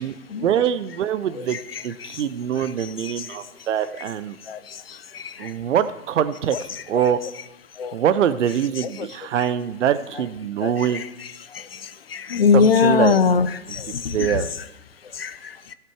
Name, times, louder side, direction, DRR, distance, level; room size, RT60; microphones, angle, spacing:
voice 1, 0.0-1.6 1.8-4.4 5.4-6.6 6.9-7.2 7.9-11.0 12.5-13.2 13.7-13.8 14.1-14.5, right 9 dB, 60° right, 0.6 m, -23 dB
voice 2, 12.1-14.4 15.2-15.3, left 5 dB, 45° left, 0.5 m, -20 dB
16.0 x 5.9 x 4.5 m
hypercardioid pair, 170°, 42 cm